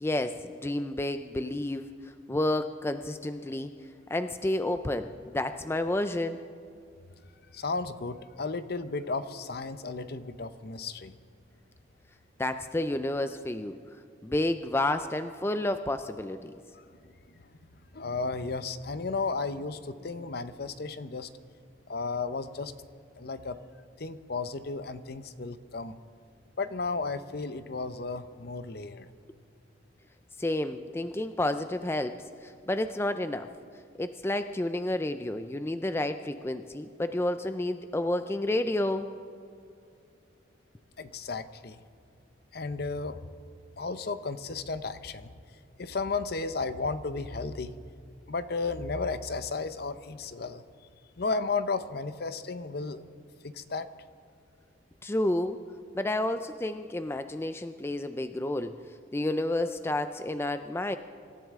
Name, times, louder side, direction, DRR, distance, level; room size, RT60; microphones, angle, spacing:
voice 1, 0.0-1.9 2.3-3.7 4.1-6.4 12.4-13.7 14.2-16.5 30.4-33.5 34.0-39.1 55.0-55.6 55.9-58.7 59.1-61.0, left 1 dB, 10° left, 9 dB, 0.4 m, -30 dB
voice 2, 7.5-11.2 16.7-16.8 17.9-21.3 21.9-22.7 23.2-23.6 24.0-26.0 26.6-29.1 41.0-41.8 42.5-43.2 43.8-45.3 45.8-47.8 48.3-50.6 51.2-53.0 53.4-53.9, left 4 dB, 55° left, 12 dB, 0.7 m, -34 dB
25.5 x 13.5 x 3.6 m, 2.4 s
head